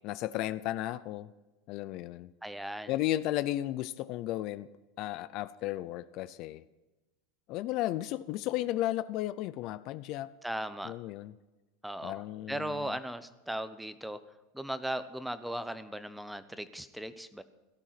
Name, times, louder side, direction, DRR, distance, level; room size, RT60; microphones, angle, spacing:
voice 1, 0.0-1.3 1.7-2.3 2.9-4.7 5.0-6.6 7.5-10.3 10.8-11.3 12.0-12.9, left 14 dB, 50° left, 15 dB, 0.5 m, -34 dB
voice 2, 2.4-2.9 10.4-10.9 11.8-14.2 14.5-17.4, right 1 dB, 5° right, 12 dB, 0.8 m, -37 dB
17.0 x 13.0 x 5.9 m, 1.1 s
supercardioid pair, 135°, 0 cm